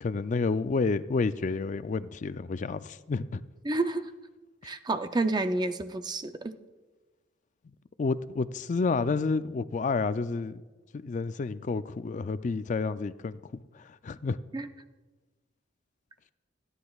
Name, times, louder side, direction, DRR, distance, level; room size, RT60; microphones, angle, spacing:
voice 1, 0.0-3.4 8.0-10.6 11.0-14.4, left 4 dB, 40° left, 14 dB, 0.4 m, -30 dB
voice 2, 3.6-4.1 4.6-6.5 14.5-14.7, right 2 dB, 20° right, 9 dB, 0.5 m, -29 dB
29.5 x 9.8 x 2.4 m, 1.3 s
head